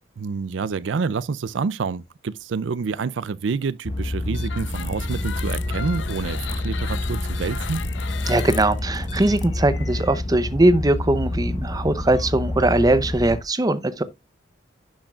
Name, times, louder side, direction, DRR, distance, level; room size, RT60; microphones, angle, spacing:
voice 1, 0.2-7.9, right 5 dB, 75° right, 0.4 m, -28 dB
sound 1, 3.9-13.4, left 1 dB, 35° left, 1.1 m, -28 dB
sound 2, 4.3-10.2, left 6 dB, 75° left, 0.7 m, -36 dB
voice 2, 8.3-14.0, right 1 dB, 20° right, 0.6 m, -20 dB
10.0 x 6.3 x 2.4 m
head